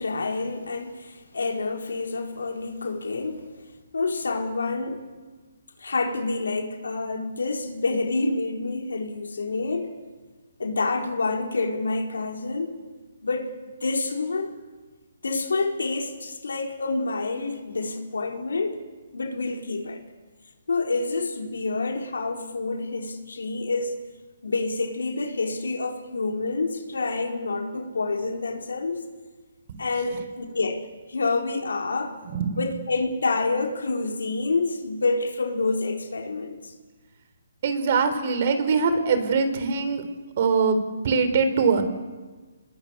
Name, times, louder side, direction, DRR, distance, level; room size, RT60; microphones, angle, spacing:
voice 1, 0.0-3.4 3.9-5.1 5.8-9.9 10.6-12.7 13.2-13.5 13.8-14.5 15.2-18.8 19.1-20.0 20.7-23.9 24.4-29.0 29.8-30.8 31.1-32.2 32.6-36.6, left 3 dB, 85° left, 2 dB, 4.5 m, -28 dB
voice 2, 32.3-32.6 37.6-40.0 40.4-40.8 41.0-41.8, right 5 dB, 45° right, 9 dB, 3.7 m, -22 dB
27.5 x 21.0 x 8.3 m, 1.3 s
hypercardioid pair, 150°, 0 cm